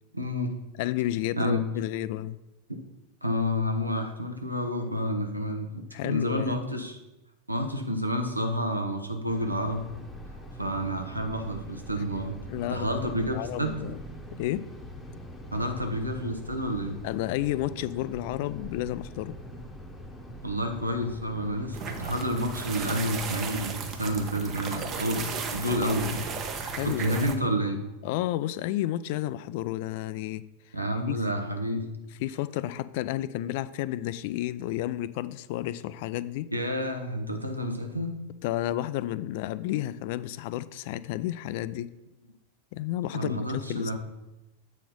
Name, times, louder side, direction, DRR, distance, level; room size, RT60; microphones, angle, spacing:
voice 1, 0.1-0.6 1.4-1.7 3.2-7.0 7.5-9.9 10.6-12.4 12.7-13.7 15.5-17.0 20.4-26.3 26.8-27.8 30.7-31.9 36.5-38.1 43.1-44.0, equal, 85° right, 5 dB, 0.9 m, -29 dB
voice 2, 0.8-2.4 5.9-6.6 12.5-14.0 14.4-14.7 17.0-19.3 26.6-27.3 28.0-30.7 31.1-31.2 32.2-36.5 38.4-41.9 42.7-44.0, left 14 dB, 50° left, 16 dB, 0.3 m, -31 dB
sound 1, 9.3-27.4, equal, 10° left, 1.0 m, -43 dB
sound 2, 21.7-27.3, right 5 dB, 30° right, 0.9 m, -35 dB
8.2 x 4.3 x 5.3 m, 0.98 s
figure-of-eight pair, 90°, 0 cm